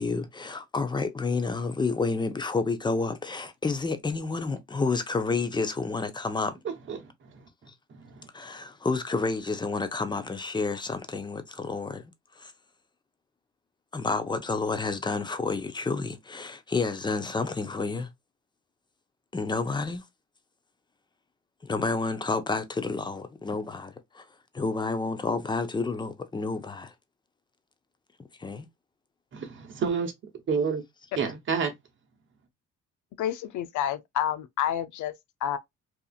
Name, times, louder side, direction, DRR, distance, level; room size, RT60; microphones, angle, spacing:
voice 1, 0.0-6.5 8.3-12.5 13.9-18.1 19.3-20.0 21.6-24.2 24.5-26.9 28.4-28.7, left 3 dB, 15° left, 0.5 m, -30 dB
voice 2, 6.6-7.5 7.9-8.3 29.3-30.1 30.5-30.8 31.2-31.7, right 5 dB, 40° right, 0.8 m, -30 dB
voice 3, 33.2-35.1 35.4-35.6, left 10 dB, 75° left, 0.5 m, -29 dB
2.8 x 2.4 x 2.3 m
cardioid pair, 90°, 30 cm